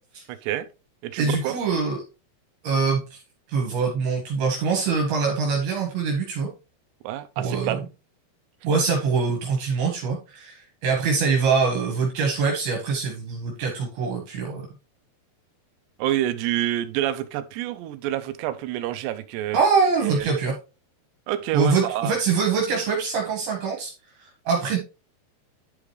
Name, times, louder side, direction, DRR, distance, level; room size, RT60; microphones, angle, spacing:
voice 1, 0.3-0.7 1.0-1.6 7.0-7.8 16.0-19.6 20.0-20.3 21.3-22.1, right 13 dB, 85° right, 2.8 m, -27 dB
voice 2, 1.2-2.0 2.6-3.2 3.5-6.5 7.4-7.8 8.6-14.7 19.5-20.6 21.5-23.9 24.2-24.8, right 5 dB, 70° right, 3.6 m, -24 dB
11.0 x 5.1 x 3.2 m
omnidirectional pair, 4.7 m